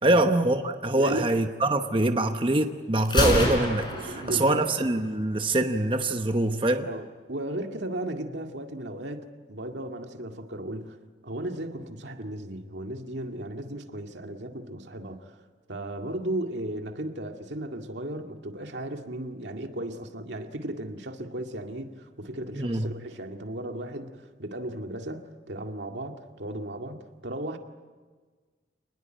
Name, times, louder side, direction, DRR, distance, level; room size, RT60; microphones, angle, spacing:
voice 1, 0.0-6.9 22.5-22.9, right 1 dB, 30° right, 1.0 m, -24 dB
voice 2, 0.9-1.3 3.9-4.7 6.8-11.0 11.2-15.3 15.7-27.6, right 1 dB, 85° right, 2.1 m, -35 dB
Gunshot gunfire, 3.0-5.0, left 1 dB, 25° left, 5.1 m, -27 dB
28.0 x 20.0 x 9.1 m
head